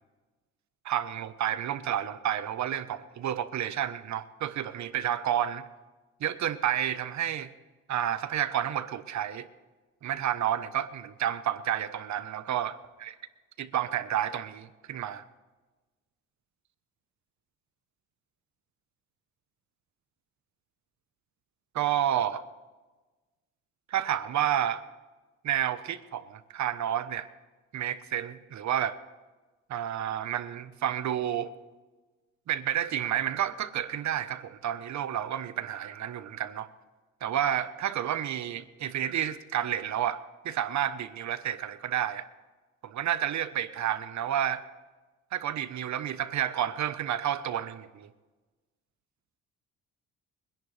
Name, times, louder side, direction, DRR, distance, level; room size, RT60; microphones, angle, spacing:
voice 1, 0.8-5.6 6.2-7.5 7.9-9.5 10.0-12.2 12.5-12.7 13.0-13.1 13.6-15.2 21.7-22.4 23.9-24.8 25.4-27.3 27.7-29.0 29.7-31.5 32.5-36.7 37.2-40.2 40.4-42.2 42.8-44.6 45.3-48.1, right 10 dB, 70° right, 11 dB, 1.1 m, -30 dB
24.0 x 10.5 x 3.4 m, 1.2 s
cardioid pair, 90°, 30 cm